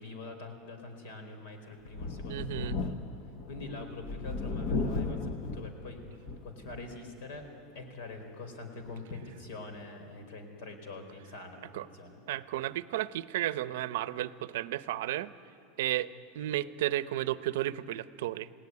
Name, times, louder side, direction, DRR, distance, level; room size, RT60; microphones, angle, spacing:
voice 1, 0.0-3.0 3.5-7.5 7.7-12.2, left 3 dB, 60° left, 6 dB, 4.3 m, -44 dB
Thunder, 1.9-7.0 7.4-7.5 8.9-9.0, left 3 dB, 35° left, 1.1 m, -36 dB
voice 2, 2.3-2.8 11.7-11.9 12.3-15.3 15.8-18.5, right 14 dB, 65° right, 14 dB, 0.7 m, -33 dB
30.0 x 18.0 x 9.6 m, 2.7 s
supercardioid pair, 180°, 0 cm